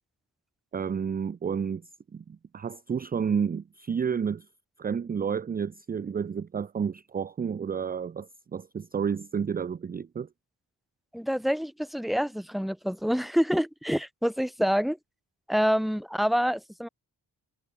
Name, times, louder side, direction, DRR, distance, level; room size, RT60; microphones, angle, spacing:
voice 1, 0.7-1.8 2.1-4.5 4.8-10.3, right 7 dB, 20° right, 0.3 m, -30 dB
voice 2, 11.1-15.0 15.5-16.9, equal, ahead, 1.2 m, -27 dB
cardioid pair, 45°, 46 cm